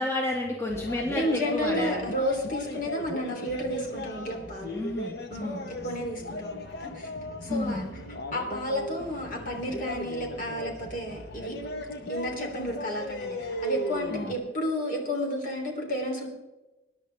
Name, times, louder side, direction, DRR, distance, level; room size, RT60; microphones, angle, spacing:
voice 1, 0.0-2.0 4.7-5.7 7.5-7.9 14.1-14.4, left 2 dB, 15° left, -3 dB, 1.9 m, -31 dB
sound 1, 0.7-14.3, equal, 65° left, 1.2 m, -37 dB
voice 2, 1.1-4.7 5.3-7.1 7.4-7.9 8.3-11.5 12.1-16.3, equal, 50° left, 1 dB, 3.2 m, -32 dB
21.5 x 10.5 x 3.5 m, 1.1 s
head